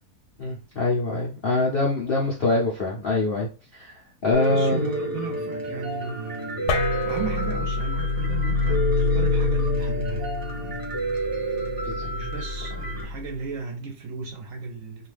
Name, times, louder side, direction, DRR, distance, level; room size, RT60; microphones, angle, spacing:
voice 1, 0.4-4.9 11.8-12.1, left 2 dB, 60° left, 0.6 m, -24 dB
Piano, 4.3-13.0, right 1 dB, 35° right, 0.3 m, -30 dB
voice 2, 4.4-10.8 12.0-15.1, right 5 dB, 65° right, 1.0 m, -36 dB
sound 1, 6.7-13.4, left 3 dB, 80° left, 1.1 m, -27 dB
2.7 x 2.3 x 3.3 m
omnidirectional pair, 1.7 m